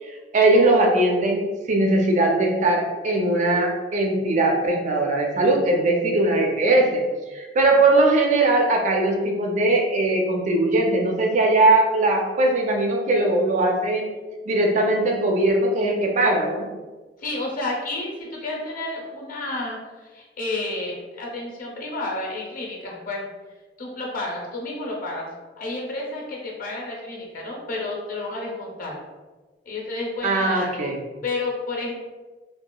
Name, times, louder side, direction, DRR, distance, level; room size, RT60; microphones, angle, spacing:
voice 1, 0.3-7.0 7.3-14.1 14.5-16.7 30.2-31.0, right 2 dB, 45° right, 1 dB, 0.4 m, -20 dB
voice 2, 17.2-23.2 23.8-25.3 25.6-29.0 29.7-31.0 31.2-31.9, left 2 dB, 50° left, -2 dB, 0.6 m, -31 dB
2.8 x 2.3 x 2.2 m, 1.3 s
head